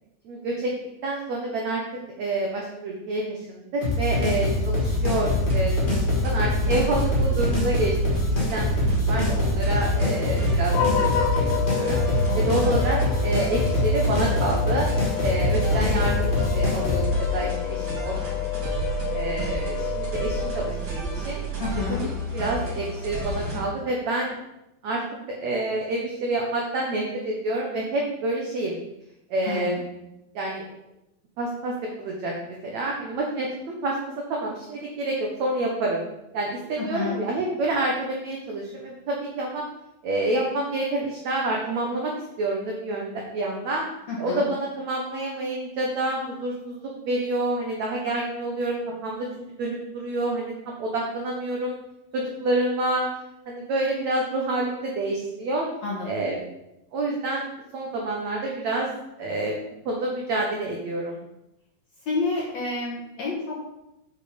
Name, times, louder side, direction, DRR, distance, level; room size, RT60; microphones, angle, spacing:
voice 1, 0.2-0.7 1.0-1.8 2.2-8.1 8.5-8.7 9.0-12.0 12.3-14.9 15.2-17.0 17.3-18.1 18.6-18.7 19.1-21.4 22.3-24.3 24.8-25.0 25.4-28.7 29.3-29.9 30.3-30.6 31.4-31.7 32.0-34.0 34.3-36.0 36.3-39.6 40.0-42.1 42.4-43.8 44.2-49.3 49.6-51.8 52.1-53.1 53.5-55.7 56.0-56.3 56.9-57.5 57.7-58.9 59.2-59.6 59.8-61.2, right 2 dB, 85° right, -1 dB, 1.5 m, -28 dB
sound 1, 3.8-17.1, left 1 dB, 40° left, 0.7 m, -24 dB
sound 2, 4.8-23.6, equal, 40° right, 1.6 m, -31 dB
sound 3, 10.7-21.2, left 9 dB, 90° left, 3.1 m, -30 dB
voice 2, 21.6-22.0 29.4-29.8 36.8-37.2 44.1-44.5 55.8-56.3 62.0-63.7, left 3 dB, 60° left, -4 dB, 1.8 m, -30 dB
7.3 x 7.0 x 5.1 m, 0.89 s
omnidirectional pair, 5.0 m